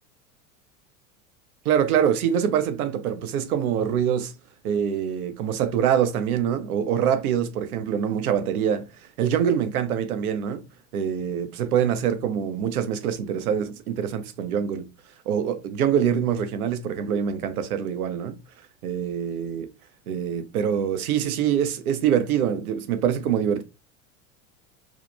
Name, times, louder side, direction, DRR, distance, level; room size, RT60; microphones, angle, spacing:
voice 1, 1.6-4.3 4.6-8.9 9.2-10.6 10.9-14.9 15.3-18.4 18.8-19.7 20.1-23.6, right 8 dB, 85° right, 0.6 m, -24 dB
2.6 x 2.1 x 2.3 m
hypercardioid pair, 90°, 43 cm